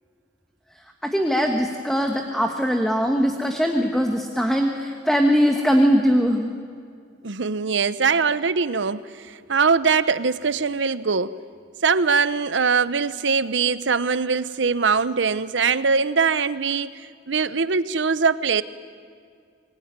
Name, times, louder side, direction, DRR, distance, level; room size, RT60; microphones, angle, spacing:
voice 1, 1.0-6.5, equal, ahead, 3 dB, 1.3 m, -21 dB
voice 2, 7.2-11.4 11.8-16.9 17.3-18.6, right 5 dB, 90° right, 15 dB, 0.8 m, -22 dB
25.0 x 20.0 x 9.5 m, 2.2 s
head